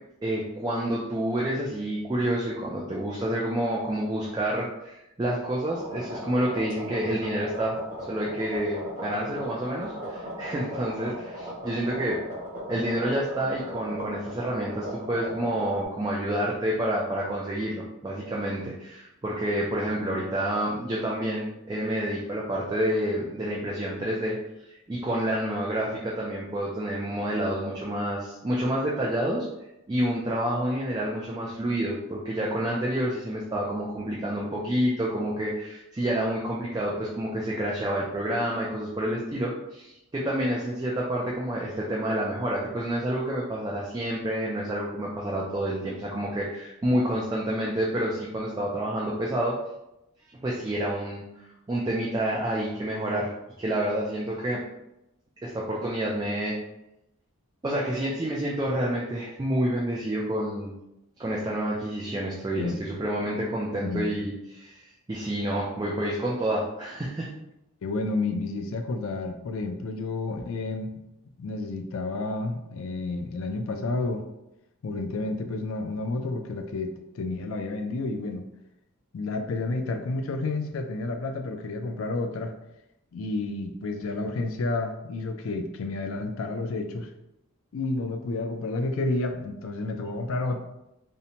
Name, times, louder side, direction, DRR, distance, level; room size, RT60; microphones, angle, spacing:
voice 1, 0.2-7.8 8.1-12.2 12.7-24.4 24.7-29.5 29.9-49.6 50.4-51.2 51.7-53.3 53.6-54.6 55.4-56.6 57.6-60.7 61.2-67.3, right 1 dB, 20° right, -4 dB, 0.3 m, -28 dB
sound 1, 5.7-15.8, equal, 40° right, 0.9 m, -37 dB
voice 2, 67.8-71.0 71.4-74.2 74.8-78.4 79.1-82.5 83.1-87.1 87.7-90.6, left 2 dB, 65° left, 5 dB, 0.3 m, -30 dB
2.7 x 2.1 x 2.8 m, 0.86 s
head